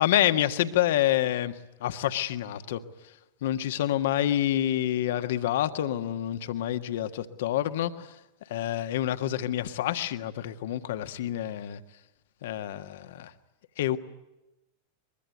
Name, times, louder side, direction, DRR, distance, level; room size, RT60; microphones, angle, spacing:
voice 1, 0.0-1.5 1.8-2.8 3.4-8.1 8.5-11.8 12.4-13.3 13.8-14.0, left 12 dB, 55° left, 10 dB, 1.6 m, -27 dB
23.5 x 22.5 x 9.4 m, 0.96 s
figure-of-eight pair, 90°, 0 cm